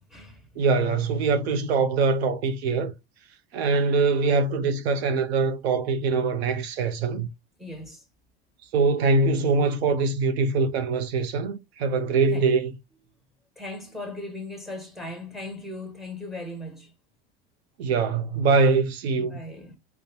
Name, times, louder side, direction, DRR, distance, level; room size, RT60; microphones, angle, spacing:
voice 1, 0.0-0.6 7.6-8.0 12.3-12.5 13.6-16.9 19.2-19.8, left 2 dB, ahead, 1.2 m, -38 dB
voice 2, 0.6-2.9 3.5-7.3 8.7-12.7 17.8-19.4, right 4 dB, 80° right, 0.7 m, -23 dB
5.1 x 2.2 x 2.7 m
hypercardioid pair, 90°, 31 cm